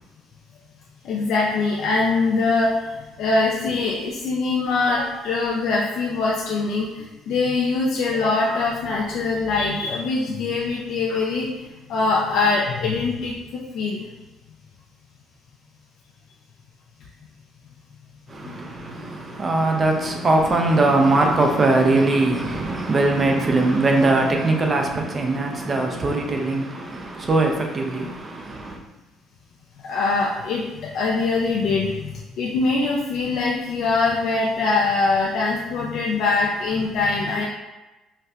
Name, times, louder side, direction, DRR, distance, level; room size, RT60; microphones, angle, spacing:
voice 1, 1.0-2.7 3.2-11.5 11.9-14.0 18.4-18.6 29.8-37.4, left 3 dB, 70° left, 0.4 m, -23 dB
voice 2, 18.3-28.8, right 2 dB, 30° right, 0.5 m, -21 dB
4.1 x 2.1 x 2.4 m
cardioid pair, 105°, 0 cm